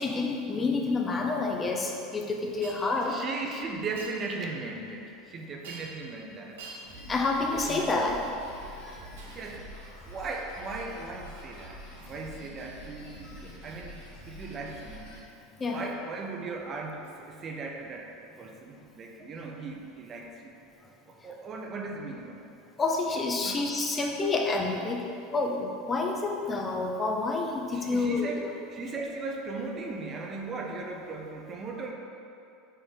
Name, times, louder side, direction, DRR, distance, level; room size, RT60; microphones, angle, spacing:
voice 1, 0.0-3.2 7.1-8.3 15.6-15.8 22.8-25.0 25.3-28.3, left 3 dB, 25° left, 1 dB, 0.5 m, -28 dB
Shatter, 2.6-2.8 4.0-4.2 5.6-6.1 6.6-6.9 7.6-8.4 9.2-9.6 12.0-12.2 13.1-13.3 14.0-14.2 17.0-17.1 18.2-18.3, right 3 dB, 80° right, 0.7 m, -46 dB
voice 2, 3.0-6.6 7.5-8.3 9.2-9.7 10.0-11.8 12.1-14.0 14.3-15.1 15.6-18.1 18.4-20.5 21.1-22.5 23.4-23.7 27.7-31.9, right 3 dB, 35° right, 1 dB, 0.5 m, -38 dB
Drum kit, 6.8-15.2, equal, 80° left, 1.3 m, -46 dB
4.1 x 3.2 x 3.8 m, 2.7 s
hypercardioid pair, 90°, 0 cm